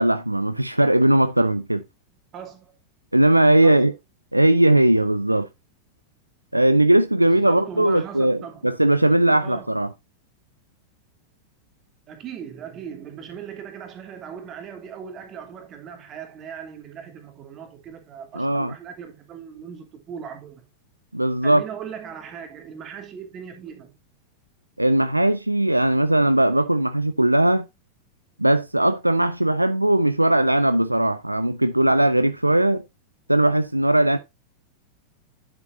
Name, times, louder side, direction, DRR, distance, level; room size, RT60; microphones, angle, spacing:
voice 1, 0.0-1.8 3.1-3.9 4.3-5.5 6.5-9.9 18.3-18.7 21.1-21.6 24.8-27.7 28.4-32.8 33.3-34.2, right 1 dB, 85° right, 0.6 m, -19 dB
voice 2, 2.3-2.7 3.6-3.9 7.2-8.7 9.4-9.8 12.1-20.7 21.4-23.9, right 7 dB, 30° right, 2.9 m, -38 dB
10.5 x 7.5 x 2.7 m
figure-of-eight pair, 90°, 0 cm